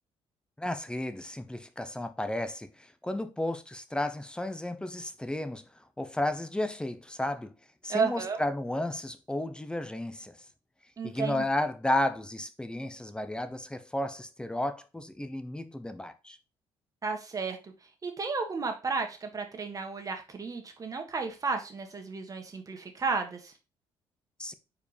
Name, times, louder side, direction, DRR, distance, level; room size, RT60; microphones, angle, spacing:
voice 1, 0.6-5.7 6.0-7.5 7.8-10.4 11.0-16.4 24.4-24.5, left 1 dB, 10° left, 0.8 m, -33 dB
voice 2, 7.9-8.4 11.0-11.4 17.0-17.7 18.0-23.5, right 4 dB, 35° right, 1.8 m, -33 dB
4.7 x 4.6 x 5.2 m
cardioid pair, 85°, 10 cm